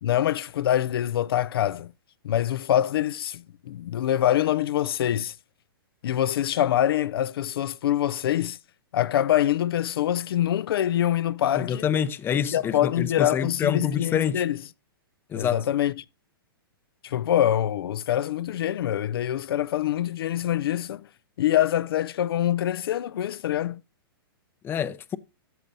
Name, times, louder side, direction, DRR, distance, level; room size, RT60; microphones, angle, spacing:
voice 1, 0.0-1.9 2.2-5.4 6.0-8.6 8.9-11.8 12.3-14.6 15.3-16.0 17.0-21.1 21.4-23.8, left 11 dB, 75° left, 0.4 m, -25 dB
voice 2, 11.6-14.4 15.3-15.6 24.6-25.2, left 8 dB, 15° left, 0.5 m, -26 dB
13.5 x 7.4 x 2.7 m
hypercardioid pair, 130°, 13 cm